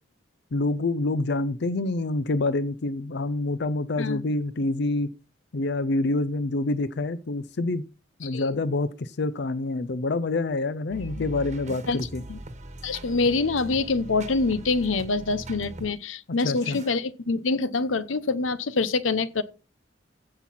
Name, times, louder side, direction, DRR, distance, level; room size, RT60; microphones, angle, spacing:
voice 1, 0.5-5.1 5.5-7.9 8.2-12.2 16.4-16.8, left 2 dB, 60° left, 0.5 m, -27 dB
voice 2, 8.2-8.6 11.2-11.3 11.9-12.0 12.3-12.4 12.8-19.4, left 3 dB, 85° left, 0.8 m, -25 dB
sound 1, 10.9-15.9 16.4-16.9, right 1 dB, 35° right, 1.3 m, -40 dB
15.5 x 6.0 x 4.2 m
head